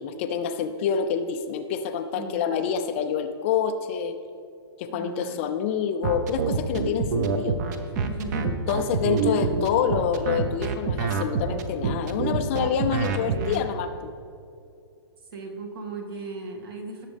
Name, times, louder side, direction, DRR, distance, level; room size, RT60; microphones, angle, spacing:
voice 1, 0.0-4.1 4.8-7.6 8.4-13.9, left 7 dB, 30° left, 8 dB, 0.4 m, -27 dB
voice 2, 2.1-2.5 4.9-5.4 8.0-8.9 9.1-9.5 13.2-13.7 15.3-17.1, right 3 dB, 55° right, 1 dB, 2.1 m, -37 dB
sound 1, 6.0-13.6, right 5 dB, 40° right, 0.9 m, -26 dB
18.0 x 7.3 x 3.4 m, 2.6 s
hypercardioid pair, 160°, 14 cm